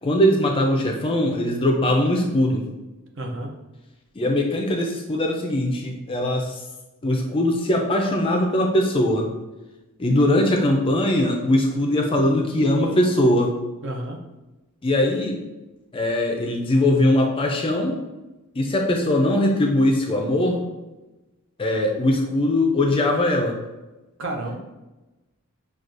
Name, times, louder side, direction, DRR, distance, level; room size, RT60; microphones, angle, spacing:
voice 1, 0.0-2.6 4.2-6.5 7.0-9.3 10.0-13.5 14.8-15.4 15.9-17.9 18.6-20.6 21.6-23.6, left 1 dB, 25° left, 2 dB, 0.4 m, -21 dB
voice 2, 3.2-3.5 13.8-14.2 24.2-24.6, right 1 dB, 55° right, 2 dB, 0.6 m, -30 dB
6.0 x 2.3 x 2.5 m, 1.1 s
head